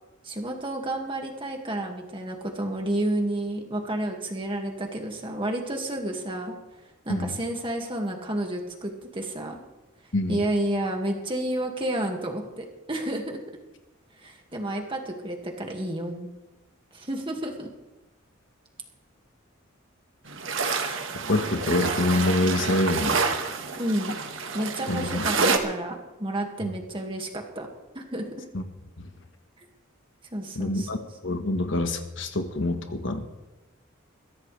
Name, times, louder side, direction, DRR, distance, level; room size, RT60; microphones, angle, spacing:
voice 1, 0.2-6.5 7.0-9.6 10.3-13.4 14.2-16.3 16.9-17.7 23.8-24.1 24.5-27.7 27.9-28.4 30.3-30.9, right 1 dB, 25° right, 2 dB, 2.2 m, -30 dB
sound 1, 20.3-25.6, right 4 dB, 65° right, 1.6 m, -28 dB
voice 2, 21.3-23.2 24.9-25.3 26.6-26.7 28.5-28.6 29.0-29.1 30.5-31.0 31.2-33.3, left 2 dB, 60° left, 6 dB, 1.4 m, -26 dB
22.5 x 15.5 x 3.4 m, 1.1 s
head